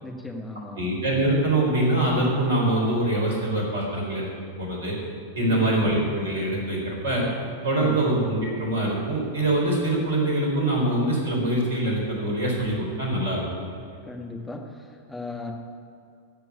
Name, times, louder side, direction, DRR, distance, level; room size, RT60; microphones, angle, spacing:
voice 1, 0.0-0.9 5.5-5.8 7.8-8.1 14.0-15.5, left 2 dB, 10° left, 1 dB, 1.7 m, -36 dB
voice 2, 0.8-4.3 4.6-4.9 5.4-7.3 7.6-13.8, right 1 dB, 65° right, -1 dB, 4.0 m, -24 dB
14.5 x 6.0 x 8.6 m, 2.4 s
figure-of-eight pair, 90°, 0 cm